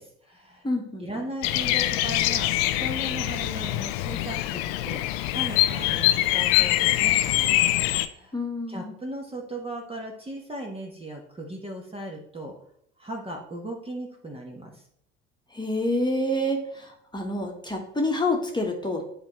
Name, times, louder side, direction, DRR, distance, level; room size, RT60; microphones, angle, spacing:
voice 1, 0.0-0.7 1.0-2.5 2.8-5.0 5.3-7.8 8.1-8.4 8.7-12.5 13.0-14.8, right 1 dB, 15° right, 1 dB, 1.3 m, -37 dB
voice 2, 0.6-1.0 8.3-8.9 15.5-19.0, left 1 dB, 10° left, 1 dB, 1.5 m, -27 dB
Bird vocalization bird call bird song, 1.4-8.1, left 15 dB, 60° left, 0.6 m, -24 dB
10.5 x 4.3 x 3.2 m, 0.72 s
figure-of-eight pair, 65°, 35 cm